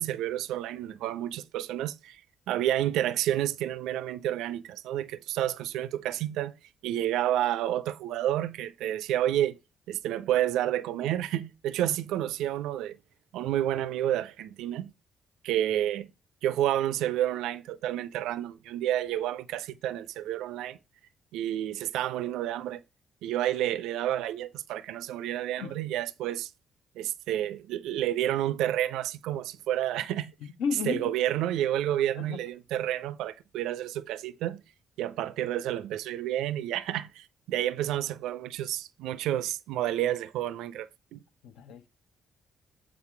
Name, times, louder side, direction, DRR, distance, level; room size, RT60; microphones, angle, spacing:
voice 1, 0.0-2.2 2.5-6.5 6.8-9.6 9.9-13.0 13.3-14.9 15.4-16.1 16.4-20.8 21.3-22.8 23.2-26.5 27.0-30.3 30.9-34.6 35.0-41.2, right 12 dB, 65° right, 0.4 m, -30 dB
voice 2, 30.4-31.1 32.2-32.4 41.4-41.9, left 6 dB, 65° left, 0.6 m, -33 dB
7.2 x 3.8 x 4.3 m
figure-of-eight pair, 40°, 0 cm